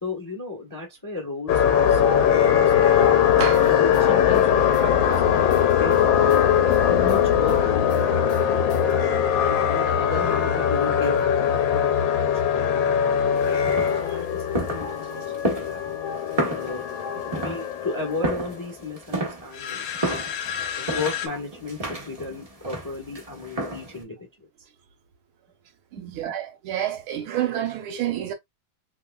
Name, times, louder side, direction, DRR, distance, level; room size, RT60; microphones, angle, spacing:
voice 1, 0.0-3.0 3.5-6.4 6.7-8.9 9.3-12.3 12.5-13.0 13.4-13.6 14.0-15.9 16.5-16.8 17.2-20.2 20.7-24.3 25.9-26.2, left 3 dB, 20° left, 0.5 m, -34 dB
sound 1, 1.5-18.7 19.6-21.3, left 9 dB, 75° left, 1.3 m, -21 dB
voice 2, 3.2-3.7 25.9-28.3, right 10 dB, 80° right, 1.6 m, -29 dB
sound 2, 3.4-8.9, left 7 dB, 90° left, 0.6 m, -39 dB
sound 3, 13.4-24.0, right 1 dB, 50° right, 0.4 m, -32 dB
3.6 x 3.0 x 2.2 m
omnidirectional pair, 2.4 m